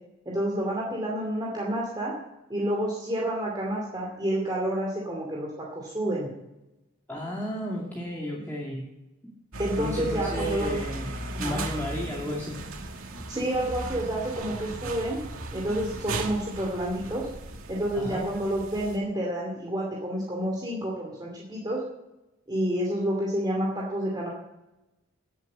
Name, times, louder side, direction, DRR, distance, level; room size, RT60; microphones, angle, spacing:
voice 1, 0.3-2.1 2.5-6.3 9.6-10.8 11.3-11.6 13.3-15.2 15.5-17.3 17.7-21.8 22.5-24.3, right 1 dB, 20° right, -3 dB, 2.5 m, -29 dB
voice 2, 7.1-8.8 9.8-11.1 11.4-12.6 15.7-15.8 17.9-18.3, equal, 10° left, -5 dB, 2.3 m, -33 dB
sound 1, 9.5-19.0, right 2 dB, 85° right, 2.2 m, -36 dB
18.0 x 7.9 x 8.6 m, 0.97 s
head